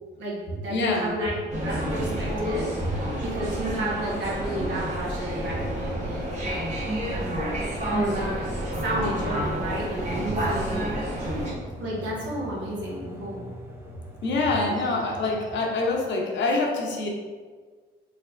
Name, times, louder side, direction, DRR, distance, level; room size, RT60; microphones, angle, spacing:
voice 1, 0.2-1.4 1.6-6.3 7.1-7.6 7.9-8.3 8.8-10.8 11.8-13.4, right 1 dB, 70° right, -5 dB, 1.2 m, -32 dB
voice 2, 0.7-1.1 9.4-9.5 14.2-17.1, left 3 dB, 65° left, 0 dB, 0.8 m, -25 dB
sound 1, 1.5-11.5, right 1 dB, 35° right, 1.2 m, -30 dB
sound 2, 3.0-16.1, right 1 dB, 10° right, 0.5 m, -40 dB
3.5 x 3.2 x 2.5 m, 1.5 s
cardioid pair, 90°, 20 cm